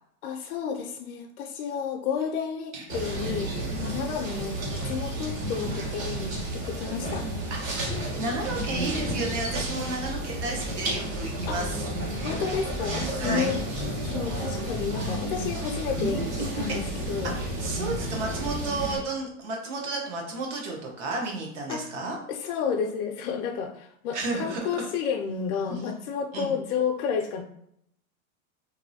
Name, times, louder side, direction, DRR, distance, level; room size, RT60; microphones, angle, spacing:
voice 1, 0.2-7.3 11.5-11.6 12.2-13.6 14.0-17.3 21.7-21.9 22.3-27.4, left 6 dB, 90° left, 3 dB, 0.5 m, -31 dB
sound 1, 2.9-19.0, right 1 dB, 70° right, 1.3 m, -31 dB
voice 2, 8.2-11.8 13.2-13.5 16.7-16.8 17.2-22.2 24.1-24.7 25.7-25.8 26.3-26.5, right 2 dB, 55° right, 0 dB, 0.8 m, -32 dB
3.0 x 2.6 x 2.7 m, 0.72 s
supercardioid pair, 165°, 43 cm